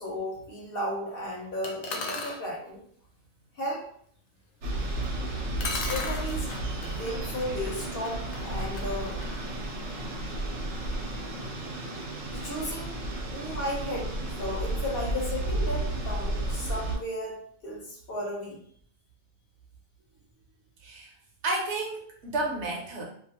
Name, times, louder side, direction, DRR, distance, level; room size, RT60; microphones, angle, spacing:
voice 1, 0.0-2.8 3.6-3.8 5.6-6.6 6.9-9.2 12.3-12.9 13.3-14.1 14.4-18.6, left 1 dB, 55° left, -3 dB, 0.9 m, -34 dB
sound 1, 1.6-2.4 5.0-5.1 5.6-10.4, left 3 dB, 80° left, 1.0 m, -38 dB
sound 2, 4.6-17.0, right 2 dB, 85° right, 1.0 m, -33 dB
voice 2, 20.8-21.1 21.4-23.1, right 2 dB, 65° right, -1 dB, 0.9 m, -31 dB
2.5 x 2.4 x 2.8 m, 0.62 s
omnidirectional pair, 1.3 m